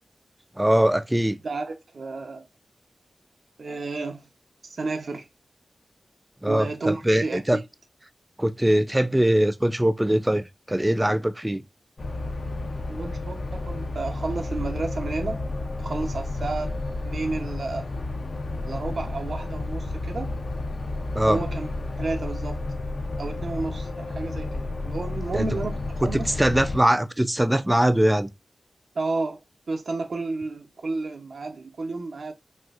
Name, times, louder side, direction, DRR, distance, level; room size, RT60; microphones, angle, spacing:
voice 1, 0.6-1.4 6.4-7.6 8.4-11.6 21.1-21.4 25.3-25.5 26.4-28.3, right 1 dB, 10° right, 0.3 m, -22 dB
voice 2, 1.4-2.5 3.6-4.3 4.6-5.3 6.4-7.6 12.9-15.5 15.8-16.8 17.0-17.9 18.6-20.3 21.3-21.7 22.0-22.6 23.2-26.3 28.9-29.4 29.7-32.3, right 3 dB, 70° right, 0.6 m, -31 dB
sound 1, 12.0-26.8, left 2 dB, 55° left, 0.5 m, -31 dB
4.3 x 2.3 x 2.4 m
wide cardioid pair, 70°, 0 cm